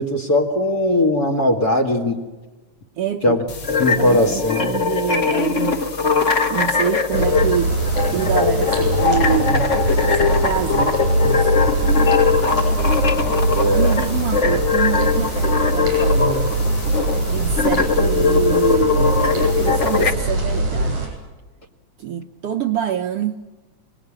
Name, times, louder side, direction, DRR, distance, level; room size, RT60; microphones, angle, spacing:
voice 1, 0.0-2.2 3.2-3.4 3.8-4.7 13.5-13.9, left 1 dB, 35° left, 4 dB, 2.4 m, -19 dB
voice 2, 3.0-3.4 3.9-7.8 8.1-9.7 10.1-11.6 13.6-16.5 17.3-21.1 22.0-23.5, right 9 dB, 65° right, 5 dB, 1.8 m, -26 dB
sound 1, 3.5-20.1, left 5 dB, 50° left, 0.8 m, -21 dB
sound 2, 7.1-21.1, right 1 dB, 85° right, 9.3 m, -21 dB
28.0 x 19.5 x 8.8 m, 1.2 s
omnidirectional pair, 3.4 m